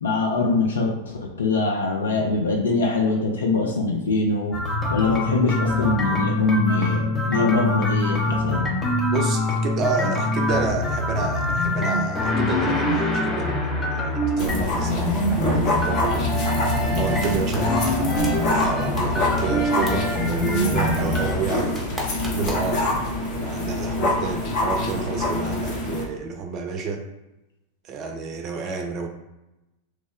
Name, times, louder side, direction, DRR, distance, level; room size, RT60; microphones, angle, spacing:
voice 1, 0.0-1.0 1.4-4.6 4.9-8.7, left 3 dB, 70° left, 0 dB, 0.4 m, -23 dB
sound 1, 4.5-21.4, left 1 dB, 15° left, 0.6 m, -24 dB
voice 2, 9.1-16.3 16.9-21.7 22.3-22.9 23.4-27.1 27.8-29.1, right 4 dB, 35° right, 4 dB, 0.5 m, -29 dB
sound 2, 14.4-26.0, left 2 dB, 45° left, 0.8 m, -26 dB
sound 3, 17.2-17.6 17.9-18.0 18.2-18.3 18.6-18.7 19.0-19.1 19.4-19.5 19.9-20.0 21.7-22.7, left 1 dB, 10° right, 1.0 m, -33 dB
3.0 x 2.1 x 3.5 m, 0.95 s
figure-of-eight pair, 90°, 0 cm